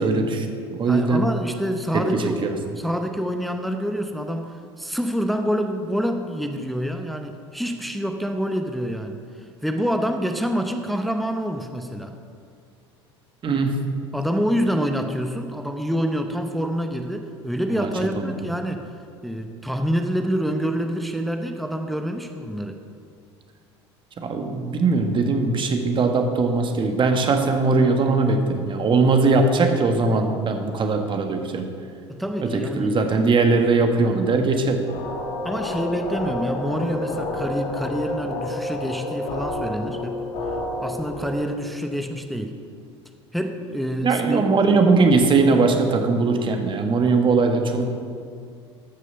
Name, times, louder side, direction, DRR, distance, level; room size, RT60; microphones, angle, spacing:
voice 1, 0.0-1.2 1.9-2.5 13.4-13.8 17.8-18.4 24.2-31.7 32.4-34.8 44.0-47.8, right 3 dB, 35° right, 5 dB, 1.4 m, -20 dB
voice 2, 0.8-9.2 9.6-12.1 14.1-18.8 19.2-22.8 32.1-33.0 35.4-40.2 40.8-42.6 43.3-44.5, equal, ahead, 5 dB, 0.8 m, -27 dB
sound 1, 34.9-41.4, left 1 dB, 55° left, 2.1 m, -29 dB
13.0 x 6.4 x 5.6 m, 2.3 s
hypercardioid pair, 70°, 15 cm